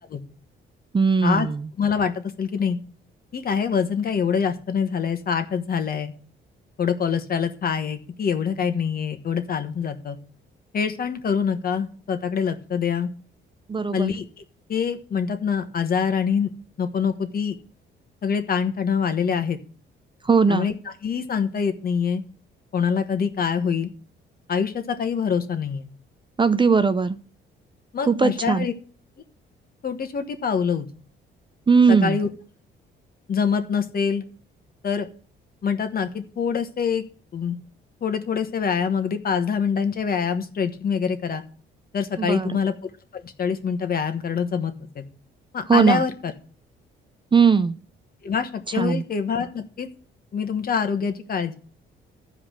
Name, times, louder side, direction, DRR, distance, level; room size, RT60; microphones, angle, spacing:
voice 1, 0.9-1.7 13.7-14.1 20.3-20.7 26.4-27.2 28.1-28.7 31.7-32.2 42.2-42.6 45.7-46.0 47.3-47.8 48.7-49.0, right 5 dB, 25° right, 12 dB, 0.6 m, -19 dB
voice 2, 1.8-2.8 3.3-6.1 6.8-10.2 10.7-13.1 13.9-14.2 14.7-16.5 16.8-17.6 18.2-19.6 20.5-22.2 22.7-23.9 24.5-25.8 27.9-28.7 29.8-30.8 31.9-32.3 33.3-34.2 34.8-35.1 35.6-37.0 37.3-37.6 38.0-41.4 41.9-42.7 43.1-45.0 45.5-46.3 48.2-49.9 50.3-51.6, left 6 dB, 50° left, 7 dB, 1.4 m, -25 dB
13.0 x 4.9 x 6.3 m, 0.41 s
cardioid pair, 90°, 20 cm